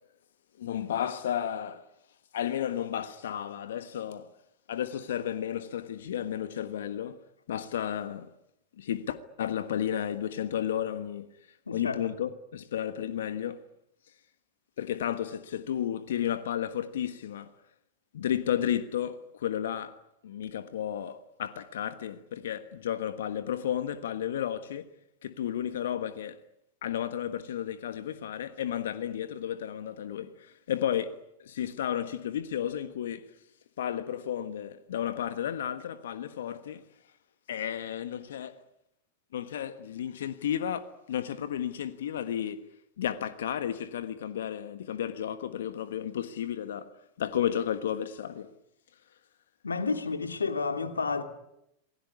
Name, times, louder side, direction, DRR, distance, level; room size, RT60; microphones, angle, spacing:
voice 1, 0.6-1.8 2.3-4.3 4.7-7.2 7.5-8.3 8.8-11.3 11.7-13.6 14.8-17.5 18.1-19.9 20.2-24.9 25.2-26.4 26.8-33.3 33.8-36.8 37.5-38.6 39.3-42.6 43.0-46.9 47.2-48.5, left 10 dB, 70° left, 1.4 m, -33 dB
voice 2, 11.7-12.0 49.6-51.2, left 4 dB, 85° left, 2.7 m, -30 dB
27.0 x 19.5 x 9.7 m
figure-of-eight pair, 95°, 0 cm